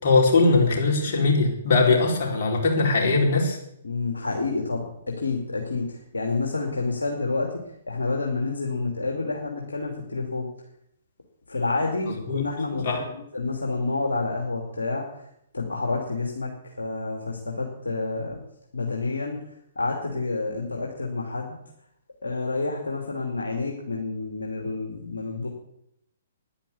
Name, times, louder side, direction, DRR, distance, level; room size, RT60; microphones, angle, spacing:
voice 1, 0.0-3.6 12.1-12.4 12.8-13.0, left 3 dB, 45° left, -1 dB, 4.4 m, -21 dB
voice 2, 3.8-4.9 5.2-7.5 7.9-10.5 11.5-15.1 15.5-16.5 16.8-18.4 18.7-19.4 19.8-21.6 22.2-25.5, left 3 dB, 75° left, 1 dB, 2.5 m, -29 dB
10.5 x 10.0 x 8.4 m, 0.74 s
figure-of-eight pair, 120°, 0 cm